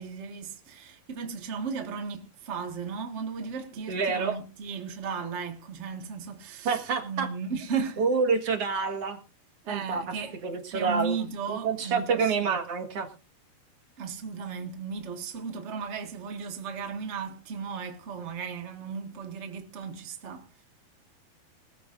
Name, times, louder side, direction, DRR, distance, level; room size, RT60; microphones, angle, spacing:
voice 1, 0.0-8.0 9.6-12.6 14.0-20.5, right 5 dB, 85° right, 0.6 m, -36 dB
voice 2, 3.9-4.4 6.6-7.3 8.0-9.2 9.7-10.0 10.4-11.1 11.5-13.1, right 5 dB, 50° right, 2.0 m, -27 dB
20.5 x 13.0 x 2.6 m
omnidirectional pair, 4.4 m